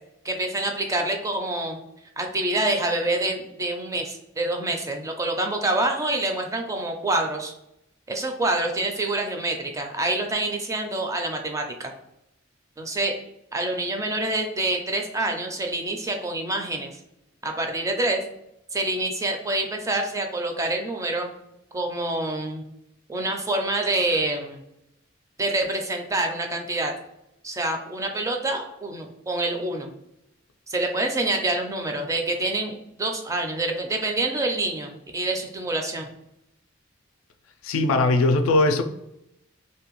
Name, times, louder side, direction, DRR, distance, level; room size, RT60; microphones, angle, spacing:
voice 1, 0.2-1.8 2.2-7.5 8.1-11.9 12.8-13.1 13.5-16.9 17.4-18.2 18.7-21.3 21.7-22.6 23.1-24.6 25.4-26.9 27.4-29.9 30.7-36.1, right 2 dB, 15° right, 3 dB, 0.4 m, -26 dB
voice 2, 37.6-38.8, left 2 dB, 85° left, 7 dB, 0.4 m, -20 dB
2.7 x 2.2 x 2.9 m, 0.85 s
head